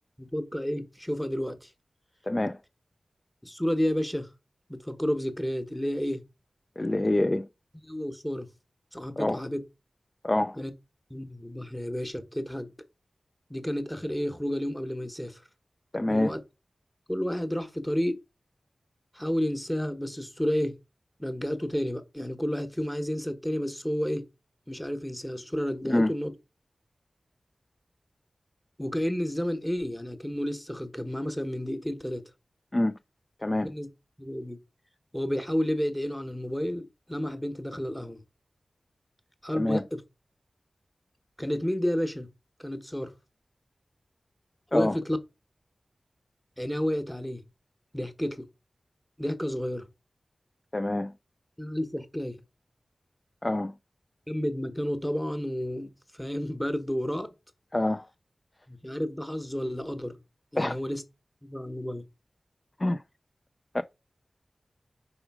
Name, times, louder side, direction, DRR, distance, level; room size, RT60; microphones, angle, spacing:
voice 1, 0.2-1.7 3.4-4.3 4.7-6.2 7.8-8.5 8.9-9.6 10.5-10.7 11.1-12.7 13.5-15.4 16.1-16.4 17.1-18.2 19.1-20.8 21.2-24.2 24.7-26.3 28.8-32.2 33.6-33.9 34.2-34.6 35.1-38.2 39.4-40.0 41.4-42.3 42.6-43.1 44.7-45.2 46.6-47.4 47.9-48.5 49.2-49.9 51.6-52.4 54.3-57.3 58.7-60.2 60.5-61.0 61.4-62.1, equal, 5° left, 1.1 m, -31 dB
voice 2, 2.3-2.6 6.8-7.4 9.2-9.4 10.2-10.5 15.9-16.3 25.9-26.1 32.7-32.9 33.4-33.7 39.5-39.8 44.7-45.0 50.7-51.1 53.4-53.7 57.7-58.0 60.6-60.8 62.8-63.0 63.7-63.8, left 1 dB, 25° left, 0.4 m, -26 dB
5.0 x 4.9 x 4.8 m
wide cardioid pair, 80°, 0 cm